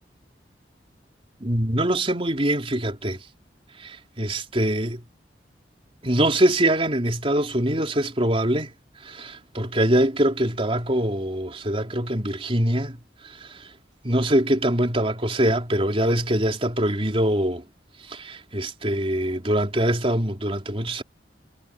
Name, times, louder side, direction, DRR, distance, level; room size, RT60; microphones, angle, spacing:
voice 1, 1.4-3.2 3.8-5.0 6.0-8.7 9.0-13.0 14.0-17.6 18.1-21.0, right 1 dB, 35° right, 3.5 m, -23 dB
head